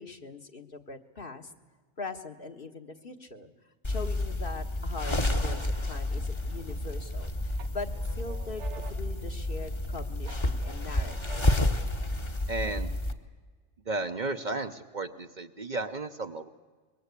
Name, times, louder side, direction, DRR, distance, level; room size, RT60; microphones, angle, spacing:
voice 1, 0.0-1.5 2.0-3.5 3.9-11.4, left 3 dB, 50° left, 5 dB, 1.6 m, -41 dB
sound 1, 3.8-13.1, left 1 dB, 25° left, 1.2 m, -30 dB
sound 2, 6.6-7.2 7.6-9.9 10.3-11.9, right 6 dB, 75° right, 1.4 m, -49 dB
voice 2, 12.5-13.0 13.9-16.5, right 2 dB, 40° right, 7 dB, 1.0 m, -33 dB
25.0 x 22.5 x 8.4 m, 1.4 s
omnidirectional pair, 1.2 m